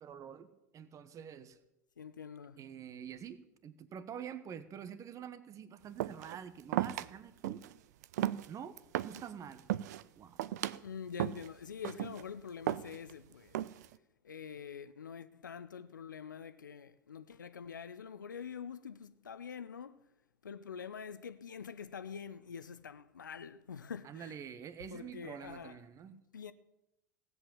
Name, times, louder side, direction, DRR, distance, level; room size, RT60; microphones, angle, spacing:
voice 1, 0.0-1.6 2.6-7.6 8.5-8.8 9.0-9.7 10.2-10.4 24.0-26.2, right 8 dB, 30° right, 1.1 m, -47 dB
voice 2, 2.0-2.6 10.8-13.6 14.2-20.0 20.4-24.4 24.9-25.8 26.3-26.5, left 7 dB, 80° left, 0.7 m, -45 dB
sound 1, 6.0-6.4 6.7-7.1 7.4-7.7 8.0-9.3 9.6-10.0 10.4-10.8 11.2-11.5 11.8-12.2 12.7-13.1 13.5-14.0, right 13 dB, 60° right, 0.5 m, -35 dB
17.0 x 8.1 x 7.2 m
figure-of-eight pair, 80°, 10 cm